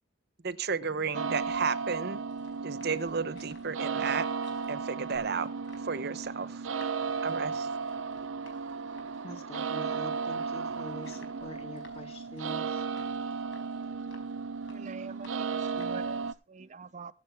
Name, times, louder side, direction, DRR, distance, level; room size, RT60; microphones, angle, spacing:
voice 1, 0.4-2.2 2.6-4.3 4.7-5.5 5.8-6.7 7.2-7.7, right 5 dB, 55° right, 0.9 m, -33 dB
sound 1, 1.1-16.3, right 5 dB, 85° right, 0.7 m, -35 dB
sound 2, 1.3-16.3, left 3 dB, 65° left, 4.8 m, -59 dB
voice 2, 9.2-12.8 15.8-16.0, left 1 dB, 30° left, 2.3 m, -45 dB
voice 3, 14.7-17.1, right 5 dB, 40° right, 0.6 m, -45 dB
22.0 x 7.6 x 3.5 m
head